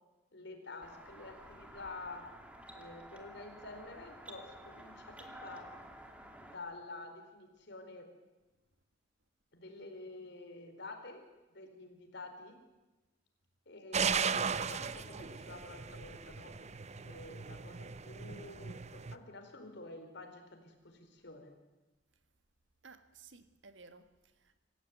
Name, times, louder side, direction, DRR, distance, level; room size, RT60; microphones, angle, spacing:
voice 1, 0.3-2.3 2.7-5.7 6.4-8.1 9.5-11.3 11.5-12.6 13.7-16.6 17.0-21.6, left 2 dB, 65° left, 4.4 m, -49 dB
sound 1, 0.8-6.5, right 1 dB, 5° right, 2.6 m, -52 dB
sound 2, 13.9-19.2, right 6 dB, 35° right, 0.8 m, -37 dB
voice 2, 22.8-24.6, right 4 dB, 80° right, 1.8 m, -57 dB
26.0 x 15.5 x 9.5 m
head